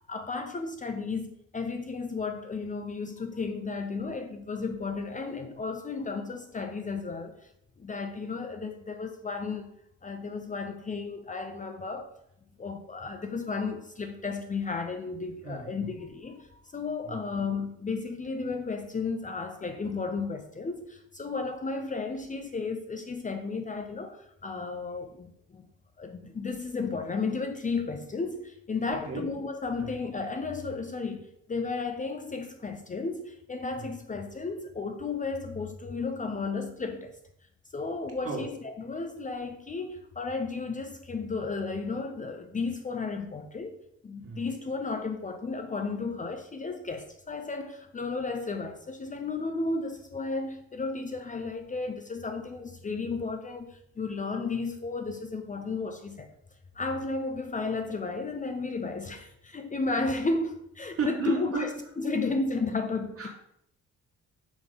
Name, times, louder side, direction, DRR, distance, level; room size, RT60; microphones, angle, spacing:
voice 1, 0.1-7.4 7.8-9.7 10.0-12.1 12.6-25.6 26.0-37.1 37.7-43.8 44.0-56.3 56.8-63.3, left 4 dB, 25° left, 0.6 m, -33 dB
voice 2, 15.4-15.9 17.0-17.2 28.9-29.2 29.8-29.9 33.7-33.9 38.2-38.4 44.2-44.4 60.9-61.6 63.2-63.3, right 4 dB, 50° right, 2.1 m, -34 dB
6.2 x 3.5 x 5.2 m
cardioid pair, 90°, 30 cm